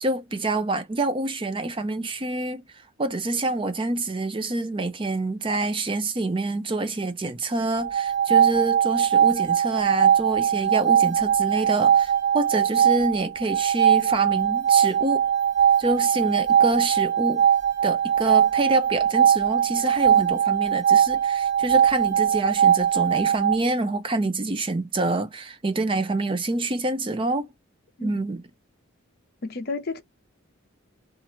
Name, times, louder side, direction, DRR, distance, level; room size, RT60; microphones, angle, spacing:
voice 1, 0.0-2.6 3.0-15.2 15.8-17.5 17.8-27.5 28.0-28.4, right 2 dB, 25° right, 0.4 m, -27 dB
sound 1, 7.8-23.6, right 9 dB, 50° right, 1.2 m, -21 dB
voice 2, 29.4-30.0, left 3 dB, 45° left, 0.7 m, -32 dB
2.9 x 2.4 x 2.8 m
head